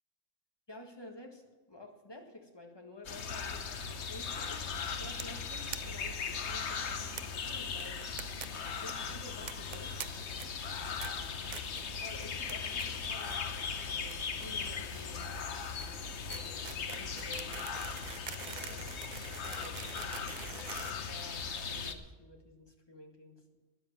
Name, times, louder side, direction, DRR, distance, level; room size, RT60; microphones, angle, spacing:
voice 1, 0.7-4.6 4.9-8.1 8.8-10.0 12.0-15.3 15.8-17.6 18.4-19.0 19.5-23.6, left 2 dB, 20° left, 3 dB, 1.6 m, -51 dB
sound 1, 3.0-21.9, left 5 dB, 70° left, 1.2 m, -38 dB
sound 2, 5.2-5.4 5.7-5.8 6.1-6.2 6.4-6.5 7.2-7.3 7.8-8.5 8.7-8.9 9.5-10.1 10.4-10.7 11.0-11.1 11.5-11.8 12.2-12.5 12.8-13.4 13.7-21.7, right 8 dB, 55° right, 0.5 m, -45 dB
13.0 x 9.7 x 7.3 m, 1.2 s
omnidirectional pair, 1.2 m